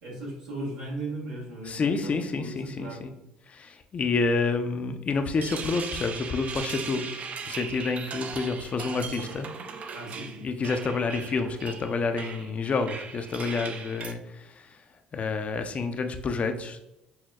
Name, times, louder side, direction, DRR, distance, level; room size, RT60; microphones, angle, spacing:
voice 1, 0.0-3.0 9.9-10.4, right 2 dB, 85° right, -4 dB, 1.2 m, -37 dB
voice 2, 1.7-3.1 3.5-7.1 7.4-9.5 10.4-14.8 15.1-16.8, left 4 dB, 40° left, 7 dB, 0.4 m, -29 dB
sound 1, 5.2-14.1, right 5 dB, 45° right, 0.4 m, -38 dB
5.6 x 2.1 x 2.3 m, 0.87 s
hypercardioid pair, 60°, 3 cm